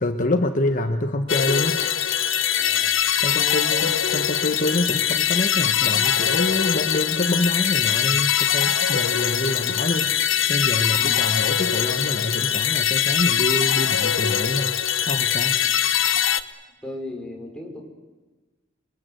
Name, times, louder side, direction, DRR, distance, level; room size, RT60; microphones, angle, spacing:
voice 1, 0.0-2.9 3.2-14.7 15.1-15.6, left 1 dB, 45° left, 7 dB, 1.1 m, -26 dB
sound 1, 1.3-16.4, left 9 dB, 80° left, 1.0 m, -22 dB
voice 2, 2.6-2.9 3.3-3.9 4.9-5.0 10.9-11.1 16.8-17.8, left 1 dB, 5° left, -1 dB, 5.3 m, -36 dB
28.0 x 22.0 x 7.9 m, 1.2 s
head